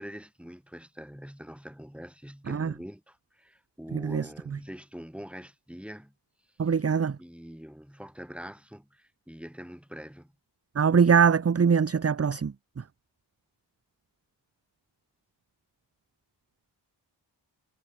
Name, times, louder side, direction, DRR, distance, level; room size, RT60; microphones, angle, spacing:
voice 1, 0.0-6.1 6.6-6.8 7.2-10.3, equal, 5° right, 4.0 m, -44 dB
voice 2, 3.9-4.2 6.6-7.2 10.8-12.5, right 6 dB, 35° right, 0.7 m, -22 dB
wide cardioid pair, 70°, 43 cm